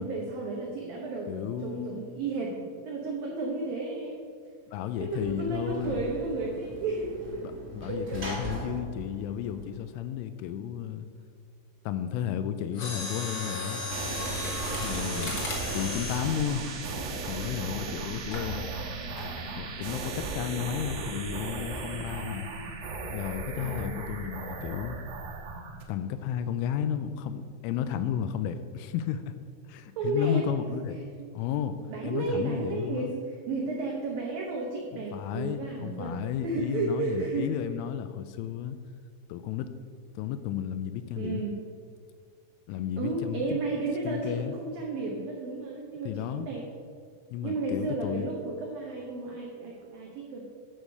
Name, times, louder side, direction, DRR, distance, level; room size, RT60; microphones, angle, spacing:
voice 1, 0.0-4.2 5.0-7.4 7.9-8.2 14.9-15.4 17.8-18.1 23.6-24.0 30.0-30.7 31.2-31.3 31.9-37.5 41.2-41.6 43.0-46.6 47.4-50.5, right 3 dB, 85° right, -1 dB, 2.0 m, -33 dB
voice 2, 1.3-2.0 4.7-6.0 7.4-11.1 11.9-13.8 14.7-15.4 15.7-16.7 17.3-18.7 19.5-22.5 23.1-25.0 25.9-29.3 29.7-31.0 31.3-31.8 32.0-33.1 34.9-38.8 39.3-39.7 40.2-41.4 42.7-43.6 44.1-44.5 46.0-46.5 47.3-48.3, left 9 dB, 85° left, 10 dB, 2.9 m, -33 dB
Sliding door / Slam, 4.9-10.3, equal, 40° right, 0.8 m, -41 dB
Mechanisms, 12.7-17.7 18.3-18.5 19.2-19.5 19.8-19.9, left 2 dB, 60° left, 1.4 m, -35 dB
sound 1, 13.9-25.8, right 3 dB, 70° right, 3.3 m, -36 dB
11.5 x 6.5 x 5.3 m, 2.1 s
omnidirectional pair, 5.7 m